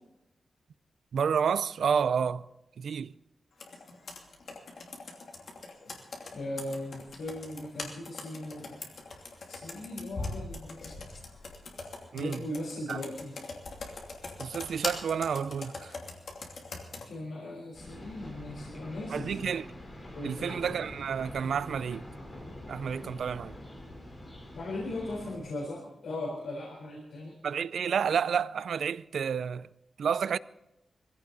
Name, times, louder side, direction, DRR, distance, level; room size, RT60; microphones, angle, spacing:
voice 1, 1.1-2.5 2.8-3.1 12.1-12.4 12.9-13.0 14.4-15.9 19.1-19.7 20.2-22.0 22.7-23.6 27.4-29.7 30.0-30.4, right 7 dB, 85° right, 0.5 m, -30 dB
Computer keyboard, 3.6-17.1, left 3 dB, 55° left, 2.8 m, -42 dB
voice 2, 6.3-8.8 9.5-11.1 12.1-13.3 17.1-19.5 20.1-20.6 24.5-27.3, left 1 dB, 80° left, 4.1 m, -38 dB
sound 1, 17.7-25.4, left 1 dB, 25° left, 3.9 m, -45 dB
22.0 x 16.0 x 4.0 m
wide cardioid pair, 170°, 0 cm